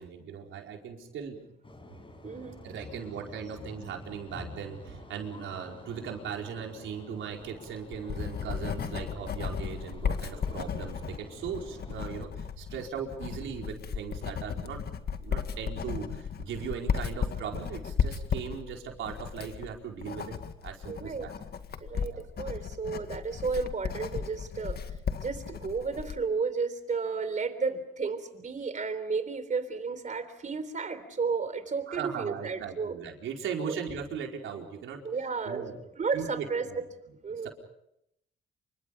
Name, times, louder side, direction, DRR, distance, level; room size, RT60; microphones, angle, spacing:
voice 1, 0.0-1.4 2.6-14.8 15.2-20.4 20.6-21.3 22.0-22.2 31.9-35.0 35.4-35.8 36.1-36.8 37.4-37.5, right 7 dB, 80° right, 1 dB, 4.8 m, -38 dB
sound 1, 1.6-12.3, left 2 dB, 25° left, 5.6 m, -48 dB
voice 2, 2.2-2.6 20.9-21.3 21.8-22.1 22.4-24.8 25.2-32.9 33.7-33.8 35.0-35.7 36.0-36.8 37.2-37.5, right 5 dB, 40° right, 11 dB, 3.7 m, -32 dB
Writing, 7.5-26.2, left 7 dB, 55° left, 1.9 m, -35 dB
28.5 x 25.0 x 5.4 m, 0.79 s
cardioid pair, 90°, 20 cm